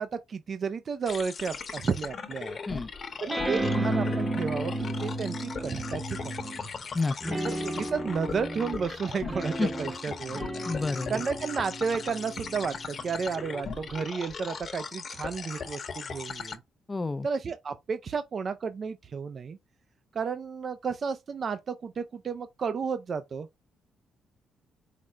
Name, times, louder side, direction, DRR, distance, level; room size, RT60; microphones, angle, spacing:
voice 1, 0.0-2.6 3.2-6.7 7.4-10.5 11.1-16.6 17.2-19.6 20.1-23.5, right 5 dB, 45° right, 0.4 m, -32 dB
sound 1, 1.1-16.6, left 5 dB, 45° left, 0.9 m, -39 dB
sound 2, 3.3-6.7 7.2-14.0, right 1 dB, 15° right, 0.8 m, -34 dB
voice 2, 6.9-7.4 9.6-9.7 10.7-11.2 16.9-17.3, left 3 dB, 20° left, 0.4 m, -29 dB
4.9 x 2.0 x 4.3 m
cardioid pair, 90°, 0 cm